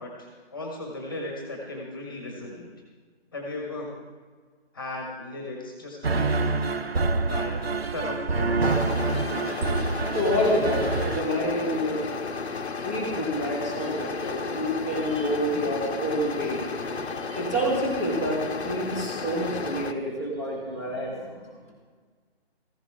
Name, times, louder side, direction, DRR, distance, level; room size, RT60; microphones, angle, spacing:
voice 1, 0.0-2.7 3.3-3.9 4.7-6.8 7.2-8.8, left 2 dB, 20° left, 0 dB, 1.6 m, -36 dB
sound 1, 6.0-11.2, right 3 dB, 65° right, 1.0 m, -26 dB
sound 2, 8.6-19.9, left 4 dB, 80° left, 1.3 m, -33 dB
voice 2, 10.1-12.1 12.8-16.6 17.1-21.6, equal, 15° right, -4 dB, 1.7 m, -28 dB
15.5 x 15.0 x 3.7 m, 1.5 s
hypercardioid pair, 175°, 32 cm